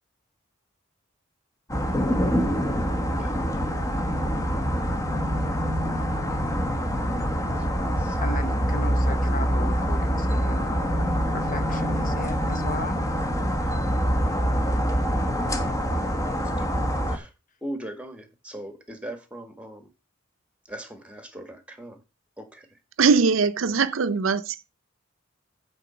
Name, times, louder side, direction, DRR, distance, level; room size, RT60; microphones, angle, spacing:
sound 1, 1.7-17.2, equal, 15° left, 1.3 m, -25 dB
voice 1, 3.2-3.7 7.6-8.2 9.6-9.7 16.4-17.3 17.6-19.9 20.6-22.0 22.4-22.8, right 1 dB, 5° right, 1.7 m, -40 dB
voice 2, 8.2-11.0 11.3-13.0, left 2 dB, 45° left, 1.1 m, -36 dB
voice 3, 23.0-24.7, right 5 dB, 85° right, 0.6 m, -21 dB
8.6 x 4.2 x 6.9 m
head